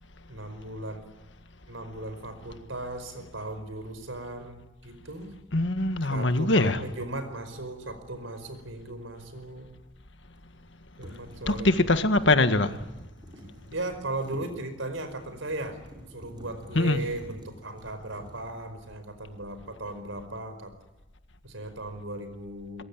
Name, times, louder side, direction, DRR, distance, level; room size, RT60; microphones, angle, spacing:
voice 1, 0.3-1.0 1.7-5.3 6.1-9.7 11.0-12.1 13.7-15.8 16.1-20.7 21.4-22.8, right 2 dB, 80° right, 5.0 m, -37 dB
voice 2, 5.5-6.8 11.5-12.7 16.8-17.0, left 2 dB, 65° left, 1.7 m, -22 dB
sound 1, 7.0-7.2 10.3-10.7 11.0-19.2 19.5-20.0, equal, 25° right, 6.6 m, -49 dB
22.5 x 22.5 x 8.8 m
head